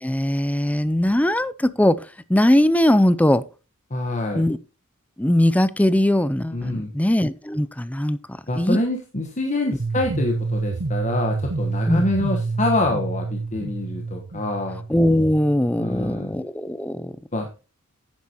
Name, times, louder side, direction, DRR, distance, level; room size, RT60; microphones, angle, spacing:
voice 1, 0.0-2.0 2.3-3.4 4.3-4.6 5.2-8.2 8.6-8.8 11.9-12.0 14.9-17.1, left 1 dB, 5° left, 0.5 m, -20 dB
voice 2, 3.9-4.4 6.5-6.9 8.5-14.8 15.8-16.3 17.3-17.5, left 2 dB, 35° left, 1.3 m, -26 dB
sound 1, 9.8-15.8, right 3 dB, 55° right, 0.8 m, -28 dB
9.8 x 9.7 x 3.0 m
head